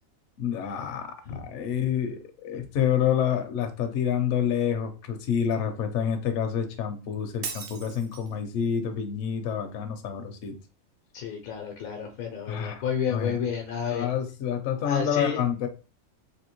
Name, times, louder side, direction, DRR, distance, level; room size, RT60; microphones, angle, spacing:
voice 1, 0.4-1.1 1.3-10.5 12.5-12.8 13.1-13.4 13.9-15.7, left 8 dB, 70° left, 6 dB, 0.8 m, -28 dB
Shatter, 7.4-8.4, right 6 dB, 65° right, 0.8 m, -37 dB
voice 2, 11.1-14.1 14.8-15.4, left 7 dB, 90° left, 3 dB, 1.1 m, -30 dB
3.4 x 2.7 x 2.9 m, 0.33 s
omnidirectional pair, 1.4 m